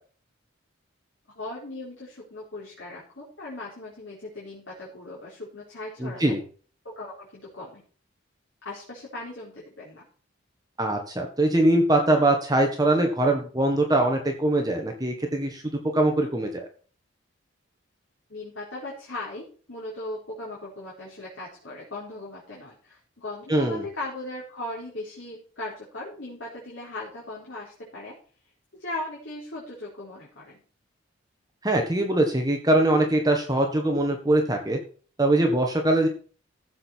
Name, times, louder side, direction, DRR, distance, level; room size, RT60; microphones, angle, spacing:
voice 1, 1.4-6.3 7.0-7.8 8.6-10.0 18.3-28.1 28.7-30.6, left 2 dB, 60° left, -6 dB, 4.2 m, -38 dB
voice 2, 6.0-6.4 10.8-15.6 15.9-16.7 23.5-23.9 31.6-34.8 35.2-36.1, right 1 dB, 20° right, 3 dB, 1.5 m, -22 dB
15.0 x 7.7 x 4.6 m, 0.41 s
head